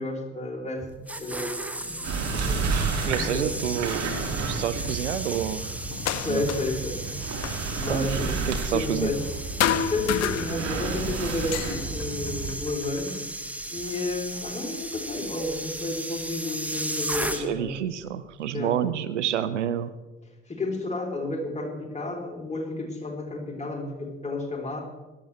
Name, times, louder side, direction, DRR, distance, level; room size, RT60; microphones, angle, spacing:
voice 1, 0.0-2.0 2.3-3.5 6.1-7.0 7.7-8.3 8.7-9.2 9.8-13.2 13.7-17.8 18.5-18.7 20.5-24.8, left 2 dB, 20° left, 0 dB, 3.3 m, -31 dB
sound 1, 0.8-17.8 18.0-18.3, right 1 dB, 5° right, 1.0 m, -36 dB
sound 2, 2.0-12.5, right 4 dB, 50° right, 2.4 m, -31 dB
voice 2, 3.0-4.1 4.4-5.8 6.3-6.5 7.9-8.2 8.5-9.1 17.3-19.9, right 10 dB, 80° right, 13 dB, 0.5 m, -29 dB
sound 3, 5.9-6.9 7.1-9.3 9.6-11.0 11.3-13.2 13.9-14.8 15.7-15.8 16.4-17.5, left 10 dB, 45° left, 0.7 m, -32 dB
17.5 x 11.5 x 3.3 m, 1.1 s
figure-of-eight pair, 50°, 35 cm